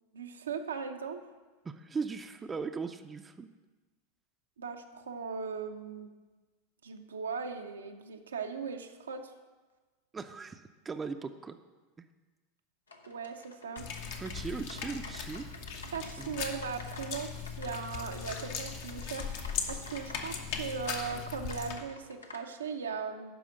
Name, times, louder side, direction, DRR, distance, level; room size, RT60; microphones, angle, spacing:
voice 1, 0.1-1.2 4.6-6.1 6.8-9.3 13.1-13.9 15.9-19.3 19.7-23.3, right 5 dB, 80° right, 5 dB, 0.7 m, -38 dB
voice 2, 1.6-3.5 10.1-11.6 12.0-12.1 14.2-15.5 15.8-15.9 16.2-16.4, right 5 dB, 20° right, 8 dB, 0.5 m, -39 dB
sound 1, 12.9-22.4, left 3 dB, 80° left, 0.8 m, -51 dB
sound 2, 13.8-21.7, left 6 dB, 55° left, 1.1 m, -39 dB
11.5 x 4.9 x 6.2 m, 1.3 s
figure-of-eight pair, 85°, 0 cm